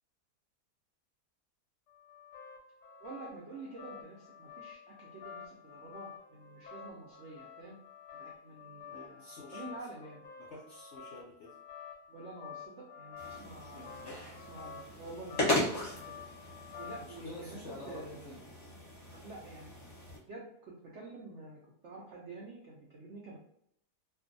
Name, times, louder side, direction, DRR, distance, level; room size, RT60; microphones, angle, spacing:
sound 1, 1.9-17.2, left 7 dB, 85° left, 1.2 m, -50 dB
voice 1, 3.0-7.8 8.1-10.2 12.1-16.2 16.8-18.4 19.1-19.8 20.3-23.4, right 2 dB, 80° right, -3 dB, 0.6 m, -48 dB
voice 2, 8.9-9.8 10.4-11.6 13.7-14.2 17.0-18.4, left 2 dB, 70° left, -5 dB, 0.7 m, -49 dB
sound 2, 13.2-20.2, left 1 dB, 30° left, 0.8 m, -38 dB
2.5 x 2.3 x 2.5 m, 0.73 s
omnidirectional pair, 1.7 m